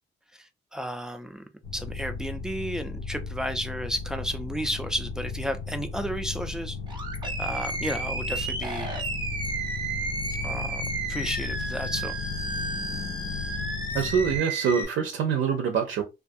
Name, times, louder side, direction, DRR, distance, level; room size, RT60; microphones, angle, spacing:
voice 1, 0.4-1.4 1.7-6.8 7.4-8.9 10.4-10.8 11.1-12.1, equal, 5° right, 0.4 m, -33 dB
sound 1, 1.6-14.4, left 4 dB, 50° left, 0.6 m, -35 dB
Animal, 6.9-14.8, right 2 dB, 20° right, 0.8 m, -33 dB
voice 2, 13.9-16.0, right 7 dB, 75° right, 0.5 m, -25 dB
2.4 x 2.3 x 2.6 m
cardioid pair, 90°, 20 cm